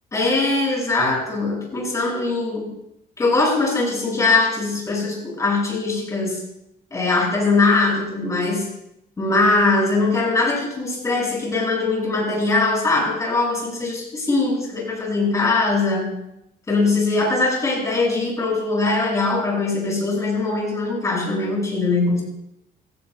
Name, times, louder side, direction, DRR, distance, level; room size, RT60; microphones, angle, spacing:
voice 1, 0.1-2.7 3.2-6.4 6.9-8.7 9.2-16.1 16.7-22.2, left 3 dB, 20° left, -2 dB, 6.2 m, -21 dB
27.5 x 16.0 x 2.3 m, 0.81 s
cardioid pair, 180°, 16 cm